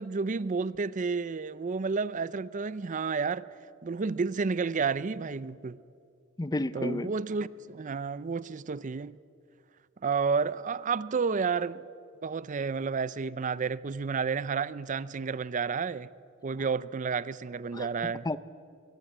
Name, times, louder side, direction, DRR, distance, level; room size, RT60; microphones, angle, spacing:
voice 1, 0.0-3.5 3.8-5.8 6.7-9.2 10.0-11.8 12.2-16.1 16.4-18.3, right 5 dB, 35° right, 0.5 m, -31 dB
voice 2, 6.4-7.1 17.7-18.4, left 2 dB, 20° left, 0.5 m, -32 dB
23.0 x 17.0 x 9.0 m
head